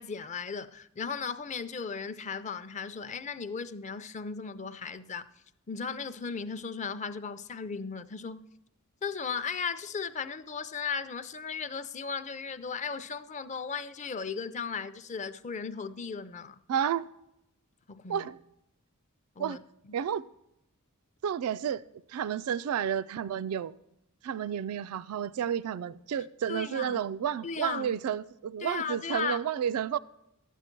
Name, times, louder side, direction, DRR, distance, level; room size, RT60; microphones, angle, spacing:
voice 1, 0.0-5.3 5.7-8.4 9.0-16.6 17.9-18.3 19.4-19.6 26.5-27.0 27.4-28.0 28.6-29.4, left 5 dB, 35° left, 0.5 m, -36 dB
voice 2, 16.7-17.1 18.1-18.4 19.4-19.6 19.9-20.2 21.2-21.8 22.1-23.7 24.2-30.0, right 8 dB, 80° right, 0.3 m, -31 dB
12.5 x 9.1 x 4.5 m
head